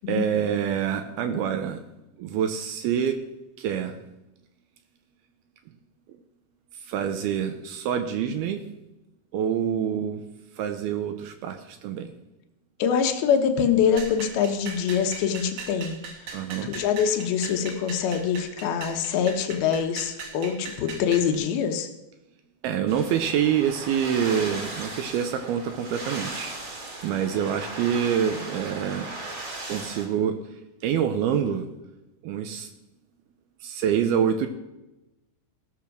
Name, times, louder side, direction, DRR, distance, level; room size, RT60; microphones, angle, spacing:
voice 1, 0.1-1.8 2.2-3.2 3.6-4.0 6.9-8.6 9.3-10.2 10.6-12.1 16.3-16.7 22.6-26.8 27.0-29.1 29.7-30.5 30.8-31.7 32.2-32.7 33.6-34.5, right 8 dB, 80° right, 8 dB, 2.3 m, -26 dB
voice 2, 12.8-15.9 16.6-21.9, left 7 dB, 70° left, 5 dB, 2.6 m, -24 dB
sound 1, 14.0-21.3, right 4 dB, 60° right, 2.8 m, -40 dB
sound 2, 22.9-30.1, right 2 dB, 40° right, 2.1 m, -37 dB
16.5 x 6.7 x 5.9 m, 0.98 s
omnidirectional pair, 5.2 m